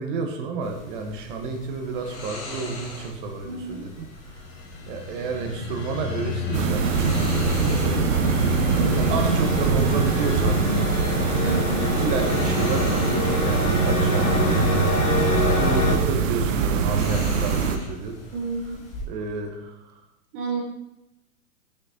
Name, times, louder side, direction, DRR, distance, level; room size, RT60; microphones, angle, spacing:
voice 1, 0.0-4.4 4.9-6.9 7.6-8.1 8.9-10.9 11.9-14.6 15.5-18.2 19.1-19.7, right 4 dB, 40° right, 5 dB, 0.9 m, -30 dB
sound 1, 0.6-19.0, left 2 dB, 40° left, 1.5 m, -41 dB
voice 2, 3.5-3.9 8.8-9.0 11.4-12.0 18.3-18.8 20.3-20.6, right 4 dB, 20° right, -2 dB, 0.4 m, -30 dB
sound 2, 4.4-16.0, left 3 dB, 60° left, 1.4 m, -27 dB
sound 3, 6.5-17.8, right 6 dB, 65° right, 0.7 m, -23 dB
6.1 x 6.0 x 2.7 m, 0.88 s
hypercardioid pair, 140°, 43 cm